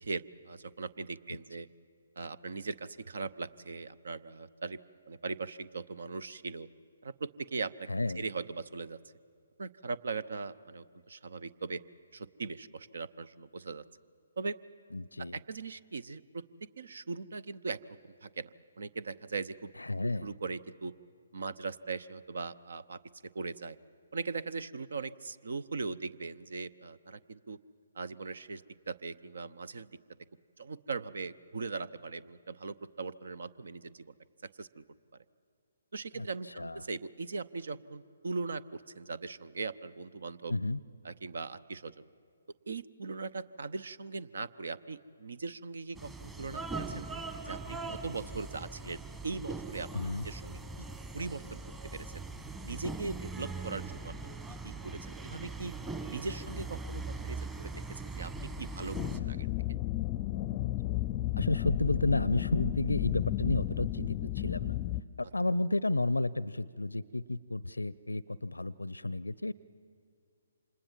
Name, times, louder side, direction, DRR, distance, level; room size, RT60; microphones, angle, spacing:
voice 1, 0.0-1.7 2.2-4.8 5.1-6.7 7.0-7.9 8.2-9.0 9.6-11.8 12.1-13.8 14.4-14.6 15.2-16.4 16.8-18.5 18.8-19.7 20.2-20.9 21.3-23.0 23.3-23.8 24.1-27.6 27.9-29.9 30.6-34.2 34.4-34.8 35.9-40.5 41.0-41.9 42.7-47.1 47.4-49.9 50.2-50.9 51.1-51.6 51.9-52.3 52.6-54.1 54.6-55.7 56.1-59.5, right 4 dB, 60° right, 18 dB, 0.8 m, -40 dB
voice 2, 7.9-8.2 14.9-15.4 19.8-20.3 36.1-36.9 40.5-40.8 49.9-50.3 60.6-60.7 61.4-64.8 65.2-69.5, left 2 dB, 80° left, 20 dB, 0.6 m, -32 dB
sound 1, 45.9-59.2, right 3 dB, 10° right, 1.3 m, -41 dB
sound 2, 58.9-65.0, left 15 dB, 25° left, 0.6 m, -33 dB
29.0 x 26.0 x 7.5 m, 2.4 s
figure-of-eight pair, 135°, 0 cm